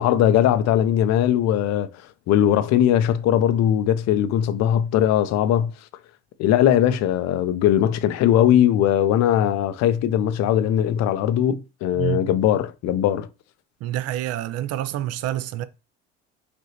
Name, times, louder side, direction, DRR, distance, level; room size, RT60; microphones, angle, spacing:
voice 1, 0.0-1.9 2.3-5.7 6.4-13.3, left 10 dB, 55° left, 0.5 m, -20 dB
voice 2, 11.9-12.3 13.8-15.6, right 13 dB, 50° right, 0.5 m, -27 dB
5.1 x 2.6 x 2.8 m
hypercardioid pair, 70°, 33 cm